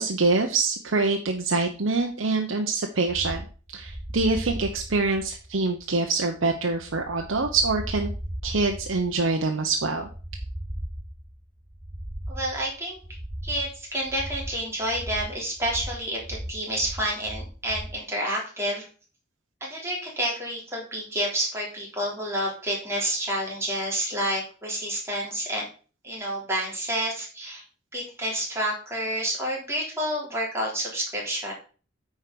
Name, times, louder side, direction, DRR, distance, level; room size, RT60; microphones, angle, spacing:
voice 1, 0.0-3.4 3.7-8.1 8.4-10.1, right 3 dB, 90° right, 3 dB, 0.9 m, -25 dB
sound 1, 3.1-18.0, equal, 40° right, 2.5 m, -37 dB
voice 2, 12.3-13.0 13.4-18.9 19.6-25.6 26.0-27.6 27.9-31.5, right 1 dB, 15° right, -3 dB, 3.4 m, -29 dB
9.2 x 4.7 x 5.2 m, 0.38 s
head